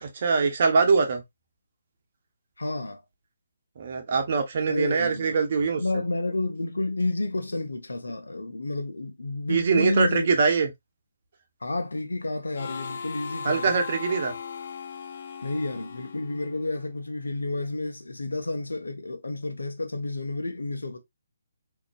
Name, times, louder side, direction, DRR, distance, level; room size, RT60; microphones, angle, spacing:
voice 1, 0.0-1.2 3.8-5.8 9.5-10.7 13.4-14.4, right 5 dB, 50° right, 1.0 m, -23 dB
voice 2, 2.6-3.0 4.7-5.4 5.8-10.3 11.6-13.8 15.4-21.0, left 2 dB, 85° left, 0.8 m, -30 dB
Harmonica, 12.5-17.0, left 6 dB, 50° left, 0.5 m, -38 dB
3.9 x 2.9 x 2.3 m
figure-of-eight pair, 145°, 0 cm